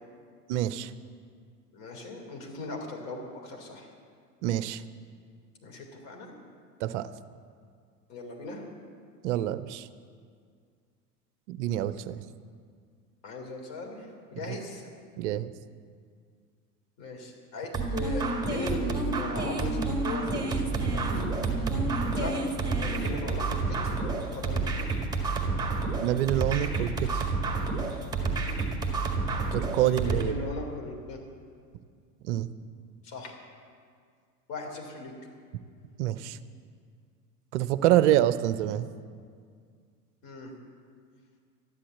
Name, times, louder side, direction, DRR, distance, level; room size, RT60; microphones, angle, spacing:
voice 1, 0.5-0.9 4.4-4.8 6.8-7.1 9.2-9.9 11.5-12.2 15.2-15.5 26.0-27.2 29.5-30.3 32.2-32.5 36.0-36.4 37.5-38.9, right 12 dB, 45° right, 14 dB, 0.7 m, -26 dB
voice 2, 1.7-3.9 5.6-6.4 8.1-8.7 13.2-14.8 17.0-21.3 22.0-24.6 29.8-31.2 33.0-33.4 34.5-35.1 40.2-40.5, left 2 dB, 45° left, 1 dB, 3.4 m, -39 dB
sound 1, 17.7-30.2, right 3 dB, 10° right, 1.9 m, -29 dB
13.5 x 11.5 x 7.5 m, 2.1 s
figure-of-eight pair, 85°, 48 cm